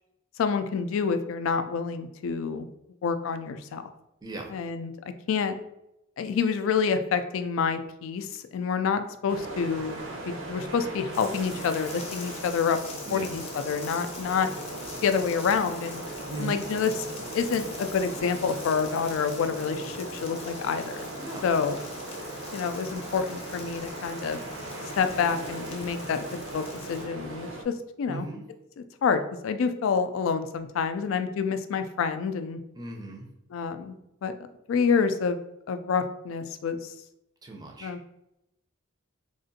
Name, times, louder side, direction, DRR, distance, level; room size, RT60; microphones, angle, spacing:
voice 1, 0.4-2.7 3.0-3.8 4.5-4.9 5.3-5.5 6.2-8.3 8.5-10.0 10.3-12.8 13.1-14.5 15.0-16.0 16.4-16.9 17.3-21.1 21.4-21.8 22.5-24.4 25.0-26.2 26.5-27.7 28.0-28.3 29.0-32.6 33.5-33.9 34.2-34.3 34.7-35.4 35.7-36.9 37.8-38.0, left 6 dB, 75° left, 9 dB, 0.3 m, -27 dB
voice 2, 4.2-4.5 13.0-13.4 16.3-16.6 21.2-21.5 28.1-28.4 32.7-33.3 37.4-38.0, right 2 dB, 20° right, 1 dB, 0.5 m, -38 dB
sound 1, 9.3-27.6, right 1 dB, 70° right, 0.6 m, -39 dB
sound 2, 11.1-27.1, left 4 dB, 30° left, 0.6 m, -44 dB
3.6 x 2.4 x 2.6 m, 0.85 s
head